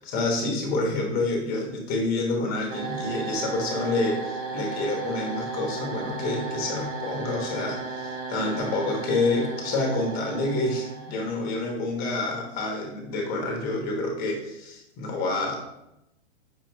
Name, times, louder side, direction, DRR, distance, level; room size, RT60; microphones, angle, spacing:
voice 1, 0.0-15.6, left 2 dB, 25° left, 0 dB, 0.9 m, -28 dB
sound 1, 2.7-11.6, right 4 dB, 60° right, 1.0 m, -35 dB
5.3 x 2.7 x 2.2 m, 0.85 s
hypercardioid pair, 135°, 36 cm